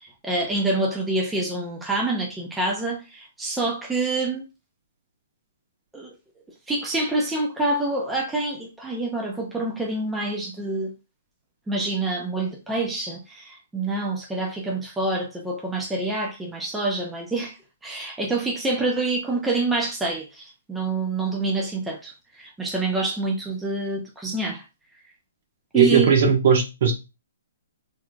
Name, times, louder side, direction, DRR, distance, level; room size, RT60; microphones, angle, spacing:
voice 1, 0.0-4.4 5.9-6.1 6.7-10.9 11.7-24.6 25.7-26.1, right 2 dB, 5° right, 0.7 m, -27 dB
voice 2, 25.7-26.9, right 6 dB, 55° right, 1.3 m, -18 dB
4.2 x 3.3 x 2.4 m
hypercardioid pair, 155°, 0 cm